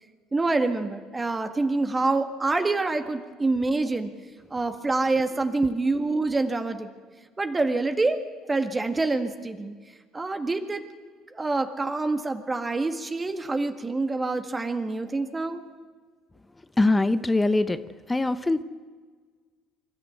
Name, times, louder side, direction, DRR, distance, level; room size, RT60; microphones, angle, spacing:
voice 1, 0.3-4.1 4.5-6.9 7.4-8.2 8.5-9.7 10.1-10.8 11.3-15.6, right 3 dB, 20° right, 7 dB, 1.7 m, -26 dB
voice 2, 16.8-17.8 18.1-18.6, left 2 dB, 15° left, 13 dB, 0.9 m, -22 dB
25.5 x 13.0 x 8.1 m, 1.5 s
hypercardioid pair, 60°, 0 cm